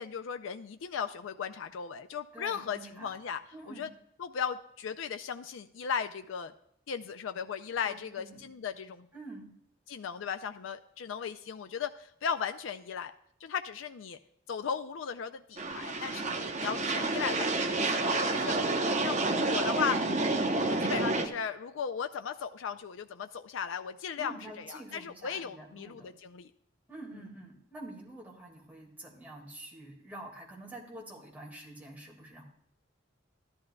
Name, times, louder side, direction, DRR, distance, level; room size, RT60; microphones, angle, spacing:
voice 1, 0.0-3.4 3.7-3.9 4.2-6.5 6.9-9.1 9.9-13.1 13.4-14.2 14.5-16.3 16.5-18.6 19.0-19.2 19.5-20.0 20.7-26.5 27.1-27.2, left 7 dB, 85° left, 8 dB, 0.4 m, -36 dB
voice 2, 2.3-3.2 3.5-3.9 7.8-8.5 9.1-9.5 24.2-26.1 26.9-32.4, right 1 dB, 10° right, -2 dB, 2.0 m, -47 dB
sound 1, 15.6-21.3, right 2 dB, 35° right, 0.8 m, -29 dB
14.0 x 11.5 x 2.3 m, 0.73 s
head